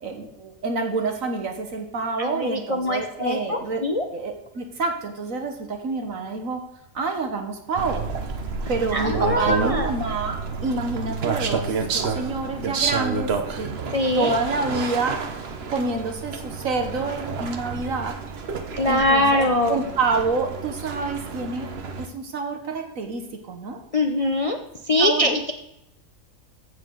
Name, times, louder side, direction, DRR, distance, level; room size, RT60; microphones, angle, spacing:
voice 1, 0.0-3.8 4.1-6.6 6.9-8.1 8.7-10.4 10.6-13.8 14.1-15.2 15.7-18.1 18.9-21.7 22.0-23.8 25.0-25.4, right 3 dB, 80° right, 4 dB, 1.7 m, -28 dB
voice 2, 2.2-4.0 8.9-9.9 13.9-14.3 18.8-19.8 23.9-24.6 24.8-25.5, left 1 dB, 35° left, 4 dB, 0.6 m, -22 dB
sound 1, 7.8-22.1, right 5 dB, 50° right, 1.1 m, -30 dB
15.0 x 7.1 x 3.9 m, 0.84 s
omnidirectional pair, 1.4 m